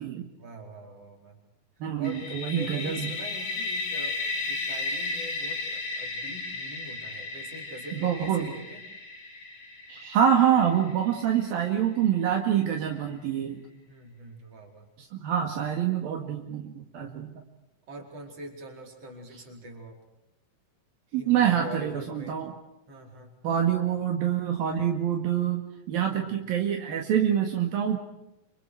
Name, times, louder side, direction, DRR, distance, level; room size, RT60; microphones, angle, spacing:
voice 1, 0.3-1.4 2.0-8.8 13.9-14.9 17.9-20.0 21.1-22.4 22.9-23.3 26.1-26.4, equal, 40° right, 2 dB, 5.6 m, -43 dB
voice 2, 1.8-3.1 7.9-8.5 9.9-13.6 15.0-17.3 21.1-22.5 23.4-28.0, right 9 dB, 70° right, 2 dB, 3.7 m, -26 dB
sound 1, 2.0-11.7, left 3 dB, 90° left, 6.7 m, -35 dB
30.0 x 26.5 x 4.8 m, 0.88 s
omnidirectional pair, 4.4 m